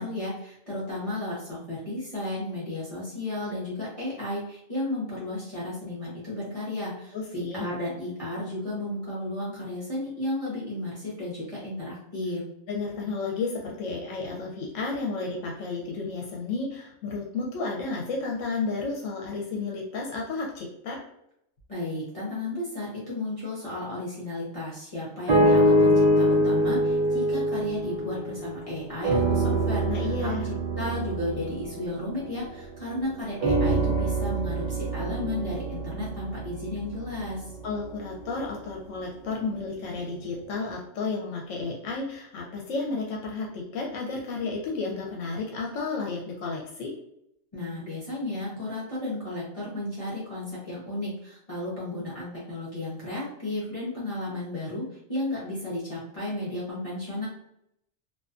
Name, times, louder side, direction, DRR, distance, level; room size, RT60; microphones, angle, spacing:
voice 1, 0.0-12.4 21.7-30.3 30.7-37.5 47.5-57.3, left 1 dB, 35° left, -8 dB, 0.7 m, -33 dB
voice 2, 7.1-7.6 12.7-21.0 29.8-30.4 37.6-46.9, left 3 dB, 85° left, -1 dB, 0.9 m, -32 dB
sound 1, 25.3-28.6 29.0-32.8 33.4-37.6 38.3-38.4, right 1 dB, 65° right, 0.4 m, -24 dB
2.5 x 2.3 x 2.4 m, 0.76 s
omnidirectional pair, 1.3 m